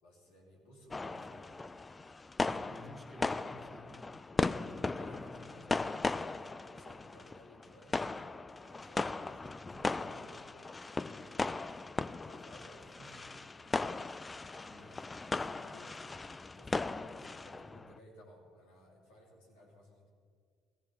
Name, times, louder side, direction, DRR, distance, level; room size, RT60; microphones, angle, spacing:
voice 1, 0.0-1.6 4.9-8.0 8.6-11.5 12.2-13.6 14.4-16.0 16.5-20.1, equal, 85° left, -3 dB, 3.1 m, -58 dB
sound 1, 0.9-18.0, left 3 dB, 25° left, 0.4 m, -38 dB
voice 2, 2.4-4.2 4.6-5.5 14.6-14.9, left 1 dB, 15° right, 2 dB, 1.8 m, -52 dB
18.0 x 14.5 x 3.5 m, 2.1 s
hypercardioid pair, 65°, 0 cm